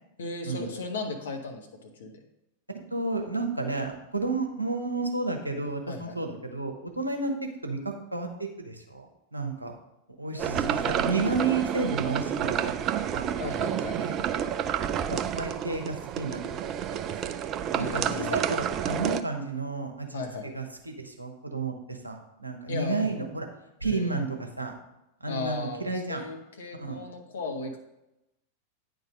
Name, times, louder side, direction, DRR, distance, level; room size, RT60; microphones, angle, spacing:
voice 1, 0.2-2.1 5.9-6.2 10.3-11.0 13.4-14.0 17.7-18.4 20.1-20.5 22.7-23.2 23.8-24.2 25.3-27.8, left 3 dB, 65° left, 3 dB, 1.2 m, -36 dB
voice 2, 2.9-7.3 7.6-9.8 10.2-13.3 14.0-14.2 15.1-16.6 16.9-17.4 17.8-23.5 23.8-24.7 25.2-26.2 26.8-27.0, right 3 dB, 85° right, 3 dB, 1.1 m, -32 dB
sound 1, 10.4-19.2, right 9 dB, 35° right, 0.4 m, -29 dB
9.3 x 3.9 x 5.0 m, 0.89 s
figure-of-eight pair, 90°, 0 cm